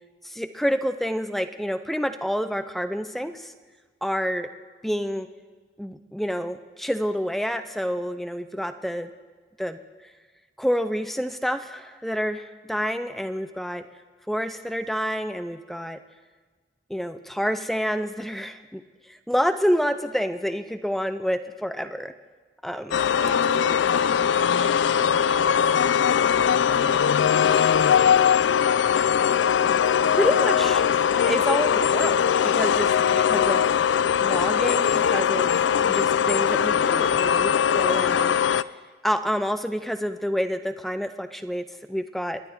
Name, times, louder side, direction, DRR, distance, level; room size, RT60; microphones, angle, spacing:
voice 1, 0.2-3.5 4.0-4.5 4.8-5.3 5.8-9.1 9.6-9.8 10.6-13.8 14.3-16.0 16.9-22.1 22.6-23.1 30.1-30.8 31.2-33.6 34.2-35.5 35.8-38.4 39.0-42.4, equal, ahead, 9 dB, 0.4 m, -28 dB
sound 1, 22.9-38.6, left 8 dB, 85° left, 0.4 m, -21 dB
voice 2, 22.9-29.2, right 4 dB, 80° right, 9 dB, 1.0 m, -41 dB
27.0 x 10.0 x 4.6 m, 1.5 s
head